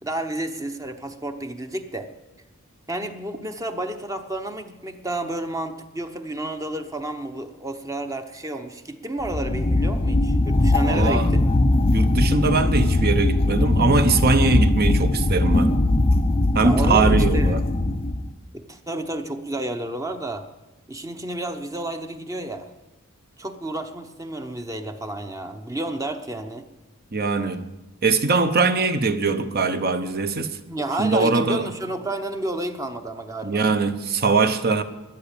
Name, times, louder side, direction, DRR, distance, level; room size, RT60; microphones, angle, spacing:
voice 1, 0.0-2.1 2.9-11.4 16.6-17.5 18.5-20.5 20.9-22.7 23.4-26.7 30.7-33.6, right 1 dB, 15° right, 0.8 m, -31 dB
sound 1, 9.2-18.3, left 2 dB, 25° left, 0.6 m, -20 dB
voice 2, 10.8-11.3 11.9-15.7 16.5-17.6 27.1-27.6 28.0-30.6 31.0-31.7 33.4-34.8, right 4 dB, 45° right, 0.9 m, -21 dB
13.5 x 9.8 x 8.8 m
head